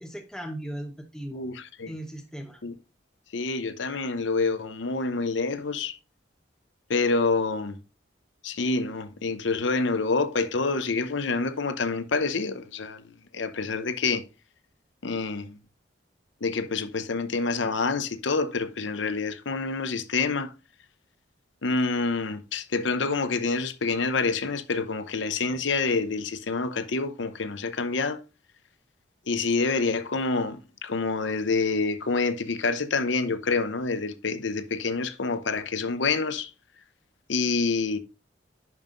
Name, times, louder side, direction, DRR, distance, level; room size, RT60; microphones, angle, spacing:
voice 1, 0.0-1.4 1.9-2.6, right 1 dB, 5° left, 0.8 m, -37 dB
voice 2, 1.3-1.9 2.6-2.8 3.3-6.0 6.9-7.8 8.4-13.0 13.3-14.2 15.0-15.5 16.4-20.5 21.6-28.2 29.3-36.5 37.3-38.0, left 4 dB, 75° left, 0.8 m, -27 dB
10.5 x 5.5 x 2.5 m
head